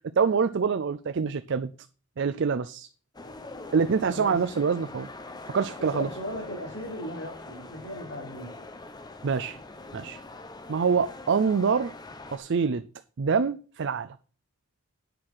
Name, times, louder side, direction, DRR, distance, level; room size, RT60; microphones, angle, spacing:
voice 1, 0.2-1.7 2.2-2.9 3.7-5.1 5.5-6.1 9.2-9.6 9.9-10.2 10.7-11.9 12.3-12.8 13.2-14.2, right 5 dB, 55° right, 0.4 m, -25 dB
sound 1, 3.1-12.4, left 2 dB, 20° left, 0.8 m, -43 dB
voice 2, 5.8-8.5, equal, 55° left, 3.9 m, -37 dB
9.1 x 5.6 x 6.2 m
head